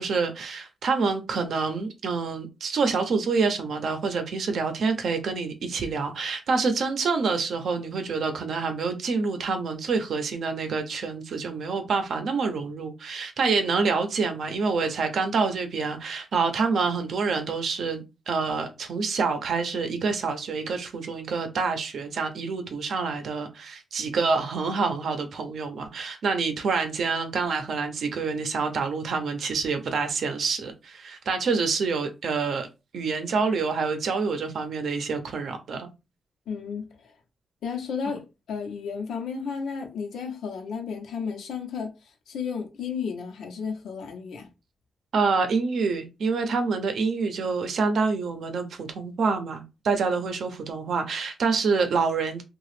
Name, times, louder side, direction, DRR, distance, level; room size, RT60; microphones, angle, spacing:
voice 1, 0.0-32.7 32.9-35.9 38.1-38.2 45.1-52.4, right 4 dB, 70° right, 0.6 m, -27 dB
voice 2, 36.5-37.1 37.6-44.5, left 6 dB, 85° left, 0.8 m, -33 dB
2.8 x 2.3 x 3.2 m
cardioid pair, 120°, 0 cm